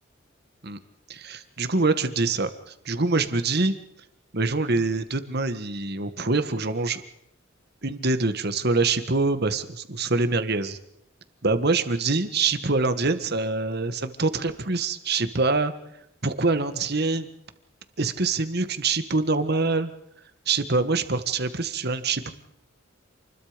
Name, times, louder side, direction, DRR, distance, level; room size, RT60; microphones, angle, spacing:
voice 1, 1.1-3.7 4.3-7.0 7.8-10.8 11.4-15.7 16.2-17.3 18.0-19.9 20.5-22.3, right 3 dB, 55° right, 10 dB, 1.7 m, -25 dB
28.5 x 21.5 x 5.2 m, 0.79 s
head